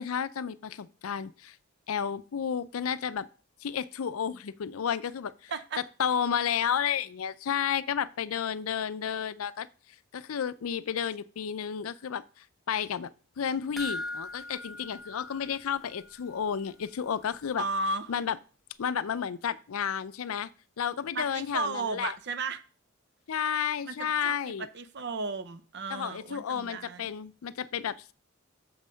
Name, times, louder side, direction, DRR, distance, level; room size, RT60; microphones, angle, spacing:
voice 1, 0.0-1.6 1.9-3.3 3.6-5.5 6.0-9.7 10.1-12.2 12.7-13.1 13.4-17.6 18.1-18.4 18.8-20.5 20.8-22.1 23.3-24.7 25.9-28.1, left 8 dB, 90° left, 0.5 m, -31 dB
voice 2, 5.5-5.8 17.6-18.1 21.1-22.6 23.8-27.1, right 3 dB, 55° right, 0.6 m, -34 dB
sound 1, 13.8-16.3 16.6-16.7 17.1-17.2, left 1 dB, ahead, 0.7 m, -40 dB
7.1 x 5.6 x 5.1 m
head